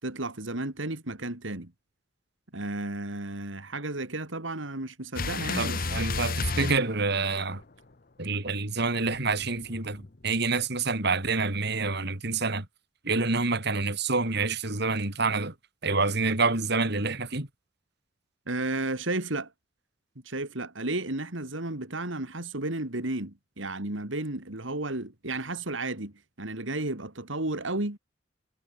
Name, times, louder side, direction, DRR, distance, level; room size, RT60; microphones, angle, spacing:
voice 1, 0.0-1.7 2.5-6.3 18.5-19.5 20.2-28.0, right 2 dB, 85° right, 3.1 m, -33 dB
sound 1, 5.2-7.6 9.1-10.4, left 3 dB, 50° left, 1.2 m, -32 dB
voice 2, 5.6-7.6 8.2-12.7 13.0-15.5 15.8-17.5, right 3 dB, 60° right, 3.6 m, -27 dB
head